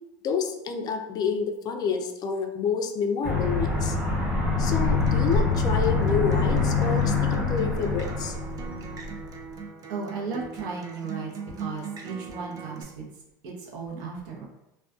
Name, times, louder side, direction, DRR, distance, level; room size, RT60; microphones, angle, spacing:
voice 1, 0.2-4.0 4.6-8.3, left 6 dB, 40° left, 5 dB, 0.4 m, -29 dB
Aircraft, 3.2-9.3, left 4 dB, 10° right, 0.9 m, -25 dB
Acoustic guitar, 4.8-12.8, right 6 dB, 35° right, 0.4 m, -39 dB
voice 2, 9.9-11.3 11.6-13.1 13.4-14.4, right 4 dB, 70° right, -1 dB, 0.7 m, -35 dB
2.3 x 2.2 x 2.4 m, 0.90 s
hypercardioid pair, 100°, 11 cm